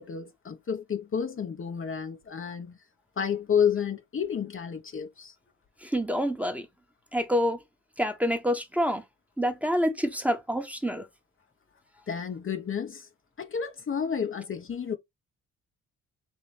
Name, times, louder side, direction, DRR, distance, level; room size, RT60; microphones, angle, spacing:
voice 1, 0.0-2.8 3.2-5.3 12.1-13.1 13.4-15.0, left 7 dB, 40° left, 0.9 m, -30 dB
voice 2, 5.8-6.7 7.1-7.6 8.0-9.0 9.4-11.1, equal, 5° right, 1.2 m, -27 dB
4.3 x 3.0 x 3.3 m
supercardioid pair, 60°, 32 cm